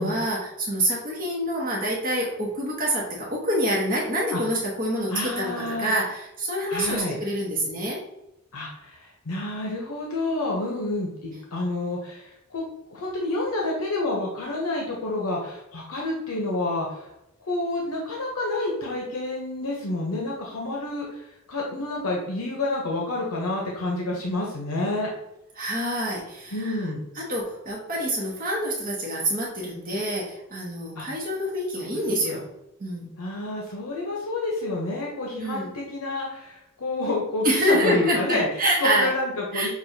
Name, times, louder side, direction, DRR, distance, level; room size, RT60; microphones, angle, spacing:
voice 1, 0.0-8.0 25.6-26.9 27.1-32.4 32.8-33.1 35.4-35.7 37.4-39.1 39.5-39.7, right 1 dB, 40° right, -3 dB, 0.8 m, -26 dB
voice 2, 5.1-5.9 6.7-7.2 8.5-12.6 12.9-17.1 17.4-25.1 26.5-27.0 31.0-31.1 31.8-31.9 32.3-32.4 33.2-38.5 38.8-39.7, left 2 dB, 75° left, -2 dB, 0.8 m, -29 dB
6.2 x 2.3 x 2.7 m, 0.88 s
head